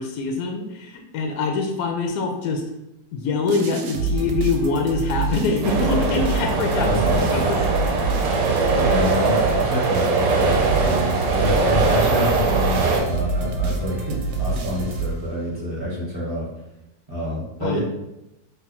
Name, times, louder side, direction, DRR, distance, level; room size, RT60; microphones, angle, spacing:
voice 1, 0.0-2.6 3.1-6.9 7.3-7.6 17.6-17.8, left 4 dB, 70° left, 3 dB, 0.8 m, -24 dB
sound 1, 3.5-15.6, right 4 dB, 90° right, 1.3 m, -27 dB
sound 2, 5.6-13.0, right 3 dB, 75° right, 1.2 m, -21 dB
voice 2, 6.8-7.5 8.8-16.5 17.1-17.8, equal, 35° right, -7 dB, 1.1 m, -27 dB
3.4 x 2.1 x 4.2 m, 0.89 s
omnidirectional pair, 2.0 m